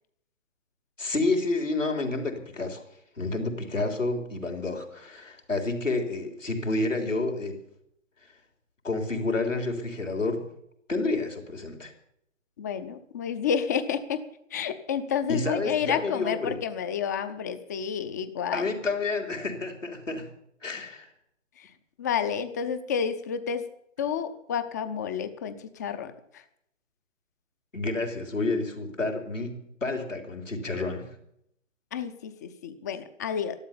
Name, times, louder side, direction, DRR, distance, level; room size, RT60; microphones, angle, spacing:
voice 1, 1.0-2.8 3.2-7.6 8.8-10.5 10.9-11.9 15.3-16.5 18.5-20.3 20.6-21.1 27.7-31.1, left 3 dB, 80° left, 4 dB, 3.8 m, -29 dB
voice 2, 12.6-14.2 14.5-18.7 21.6-23.7 24.0-26.4 31.9-33.6, left 7 dB, 15° left, 11 dB, 0.6 m, -30 dB
13.5 x 12.0 x 7.2 m, 0.73 s
figure-of-eight pair, 135°, 38 cm